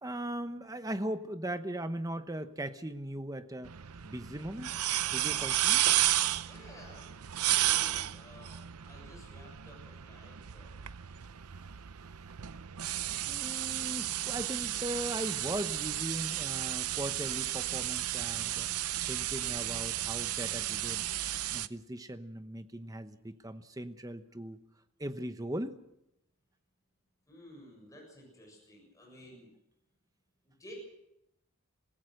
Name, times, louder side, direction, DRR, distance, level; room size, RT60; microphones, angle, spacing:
voice 1, 0.0-3.7 4.0-4.7 5.0-5.8 10.8-10.9 13.2-18.7 19.1-21.1 21.5-24.6 25.0-25.8, right 1 dB, 15° right, 9 dB, 0.9 m, -39 dB
sound 1, 3.6-21.7, right 13 dB, 85° right, 0.7 m, -33 dB
voice 2, 6.5-7.1 7.4-10.8 27.3-29.5 30.4-30.8, equal, 15° left, -1 dB, 7.3 m, -53 dB
26.0 x 16.5 x 6.6 m, 0.86 s
head